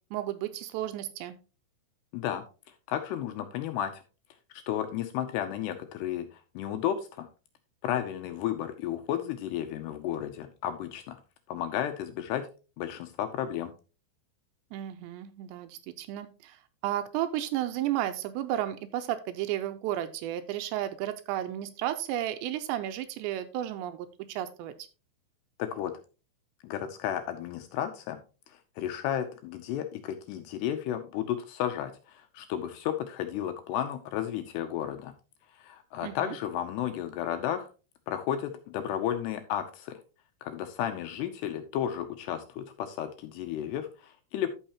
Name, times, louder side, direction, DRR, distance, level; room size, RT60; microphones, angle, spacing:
voice 1, 0.1-1.4 14.7-24.7 36.0-36.4, right 12 dB, 85° right, 10 dB, 2.7 m, -33 dB
voice 2, 2.1-2.4 2.9-4.0 4.7-7.3 7.8-11.2 11.5-12.5 12.8-13.7 25.6-25.9 26.6-28.2 28.5-35.1 35.5-37.7 38.1-40.0 40.4-44.5, left 10 dB, 80° left, 7 dB, 2.5 m, -33 dB
13.0 x 5.6 x 2.9 m, 0.33 s
omnidirectional pair, 5.3 m